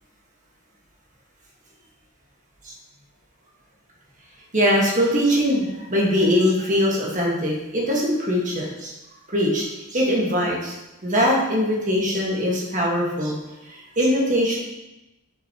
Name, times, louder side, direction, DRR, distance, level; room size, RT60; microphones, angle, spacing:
voice 1, 4.5-8.9 9.3-10.7 11.0-13.4 14.0-14.6, equal, 35° right, -3 dB, 1.5 m, -21 dB
6.8 x 6.0 x 2.9 m, 0.98 s
head